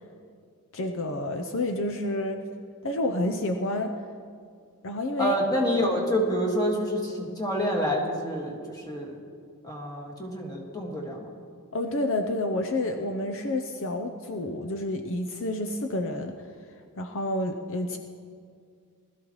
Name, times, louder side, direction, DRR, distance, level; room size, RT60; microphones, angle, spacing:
voice 1, 0.7-2.4 2.8-3.9 4.8-5.3 11.7-16.4 17.0-18.0, left 1 dB, 60° left, 5 dB, 0.7 m, -29 dB
voice 2, 5.2-9.1 9.6-11.3, equal, 15° left, -1 dB, 1.9 m, -27 dB
20.5 x 13.0 x 3.2 m, 2.2 s
head